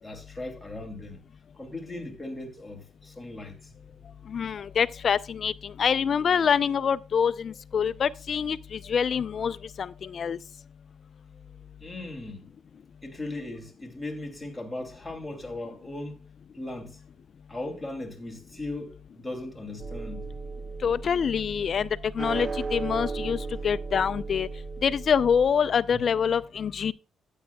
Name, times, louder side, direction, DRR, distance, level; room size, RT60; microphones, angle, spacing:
voice 1, 0.0-1.2 1.5-3.7 11.8-12.5 13.0-16.2 16.5-17.0 17.5-20.2 25.9-26.0, left 2 dB, 5° left, 2.7 m, -38 dB
voice 2, 4.3-10.4 20.8-21.9 22.1-24.5 24.8-26.9, left 7 dB, 50° left, 0.4 m, -26 dB
sound 1, 19.8-25.5, right 4 dB, 35° right, 0.4 m, -35 dB
14.0 x 8.7 x 2.3 m
cardioid pair, 90°, 0 cm